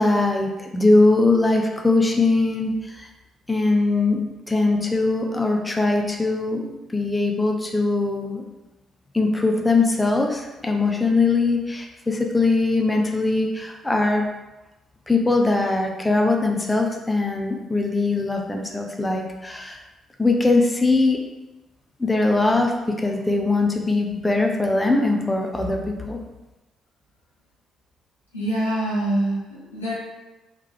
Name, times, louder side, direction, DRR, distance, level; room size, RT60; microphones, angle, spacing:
voice 1, 0.0-3.1 3.5-4.2 4.5-8.4 9.1-14.2 15.1-19.8 20.2-21.2 22.0-25.8 26.1-26.2, left 3 dB, 15° left, 2 dB, 0.6 m, -21 dB
voice 2, 28.3-29.9, right 1 dB, 90° left, -7 dB, 0.9 m, -25 dB
3.2 x 3.2 x 3.5 m, 1.0 s
figure-of-eight pair, 45°, 0 cm